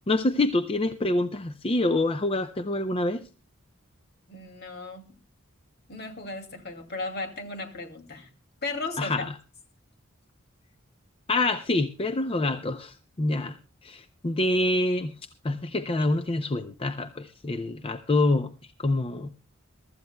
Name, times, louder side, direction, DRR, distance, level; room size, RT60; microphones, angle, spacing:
voice 1, 0.1-3.2 9.0-9.3 11.3-13.6 13.8-15.1 15.4-18.5 18.8-19.3, left 2 dB, 30° left, 8 dB, 0.6 m, -26 dB
voice 2, 4.3-5.2 5.9-8.3 8.6-9.3, left 3 dB, 55° left, 4 dB, 2.4 m, -35 dB
23.0 x 13.5 x 2.2 m, 0.34 s
head